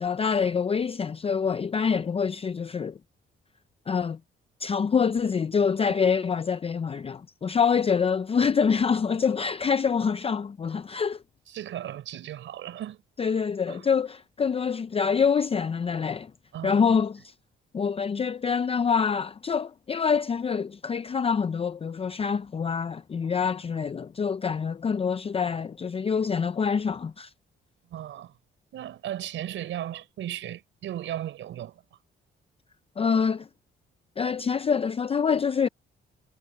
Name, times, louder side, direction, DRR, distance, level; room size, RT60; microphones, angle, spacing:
voice 1, 0.0-3.0 3.9-4.2 4.6-11.2 13.2-16.3 16.6-17.3 17.7-27.3 33.0-33.5 34.2-35.7, left 6 dB, 30° left, 0.5 m, -26 dB
voice 2, 11.5-13.0 13.7-13.8 16.5-16.8 27.9-28.3 28.7-31.8, right 11 dB, 75° right, 5.0 m, -36 dB
cardioid pair, 90°, 20 cm